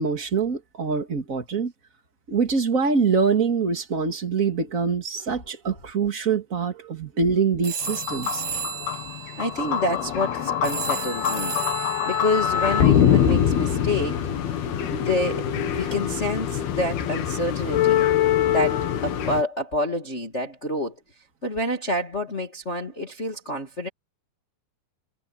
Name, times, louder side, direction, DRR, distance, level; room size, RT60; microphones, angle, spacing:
voice 1, 0.0-1.7 2.3-8.4, right 5 dB, 25° right, 2.0 m, -24 dB
sound 1, 7.6-13.8, right 6 dB, 55° right, 3.7 m, -35 dB
sound 2, 7.8-19.4, left 9 dB, 80° left, 3.9 m, -24 dB
voice 2, 9.4-14.2 14.5-14.6 14.9-18.0 18.5-21.0 21.4-23.9, left 1 dB, 25° left, 1.8 m, -28 dB
omnidirectional pair, 4.4 m